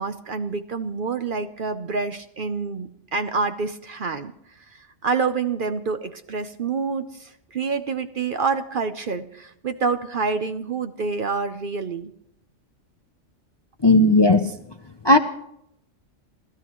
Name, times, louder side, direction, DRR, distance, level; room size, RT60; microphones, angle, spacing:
voice 1, 0.0-4.3 4.7-12.1, right 4 dB, 50° right, 10 dB, 0.8 m, -27 dB
voice 2, 13.8-14.5 15.0-15.2, left 2 dB, 30° left, 8 dB, 0.5 m, -15 dB
29.0 x 15.0 x 3.1 m, 0.78 s
omnidirectional pair, 1.3 m